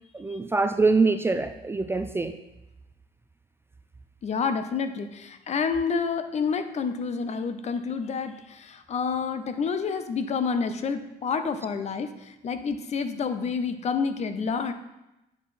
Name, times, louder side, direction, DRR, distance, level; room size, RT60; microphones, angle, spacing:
voice 1, 0.1-2.4, right 3 dB, 15° right, 8 dB, 0.3 m, -24 dB
voice 2, 4.2-14.7, left 5 dB, 40° left, 9 dB, 0.6 m, -29 dB
8.9 x 4.7 x 4.2 m, 0.95 s
cardioid pair, 110°, 17 cm